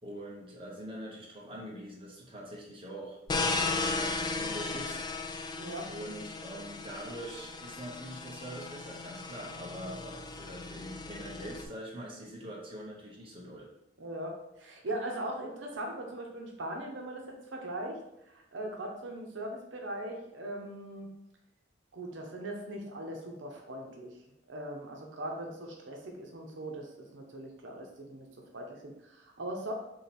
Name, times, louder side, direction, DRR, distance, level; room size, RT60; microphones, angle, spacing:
voice 1, 0.0-3.2 3.6-5.0 5.5-13.7, equal, 30° right, -3 dB, 1.0 m, -44 dB
sound 1, 3.3-11.7, left 3 dB, 25° left, 0.3 m, -36 dB
voice 2, 5.6-5.9 14.0-18.0 18.3-21.1 21.9-24.1 24.5-28.3 28.5-29.7, right 1 dB, 90° right, 1 dB, 0.8 m, -40 dB
3.8 x 2.9 x 4.2 m, 0.85 s
head